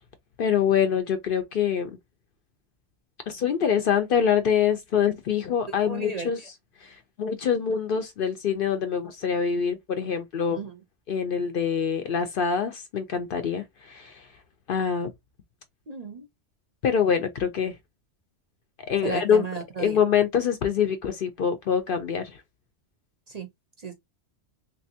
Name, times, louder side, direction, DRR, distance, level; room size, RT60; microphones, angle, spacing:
voice 1, 0.4-1.9 3.3-6.4 6.8-10.6 11.1-14.2 14.7-15.1 16.8-17.7 18.9-19.4 19.8-22.4, left 7 dB, 60° left, 0.7 m, -25 dB
voice 2, 5.8-6.5 10.5-10.8 15.9-16.3 19.0-20.0 23.3-23.5 23.8-23.9, right 5 dB, 45° right, 0.6 m, -34 dB
3.3 x 2.7 x 2.7 m
omnidirectional pair, 1.2 m